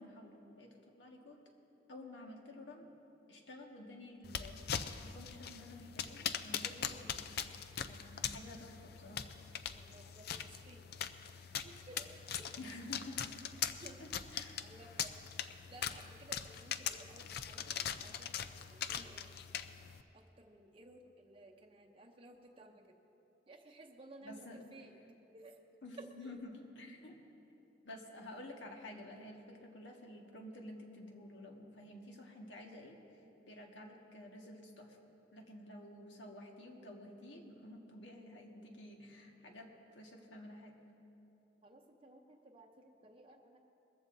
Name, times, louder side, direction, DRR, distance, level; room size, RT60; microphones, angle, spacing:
voice 1, 0.0-1.4 1.9-2.9 3.3-7.2 7.9-9.3 12.6-13.3 14.0-14.6 24.2-24.6 25.8-27.2 27.8-33.0 33.5-35.0 35.3-40.8, left 1 dB, 75° left, 1 dB, 1.7 m, -51 dB
sound 1, 4.2-20.0, left 8 dB, 55° left, 0.5 m, -42 dB
voice 2, 9.7-10.9 11.6-12.5 13.8-14.0 14.6-15.1 15.4-18.4 18.7-19.3 20.1-23.0 23.5-25.0 25.3-25.6 26.0-26.3 33.5-33.7 41.6-43.6, right 1 dB, 30° right, 2 dB, 0.8 m, -57 dB
21.0 x 14.5 x 2.7 m, 3.0 s
head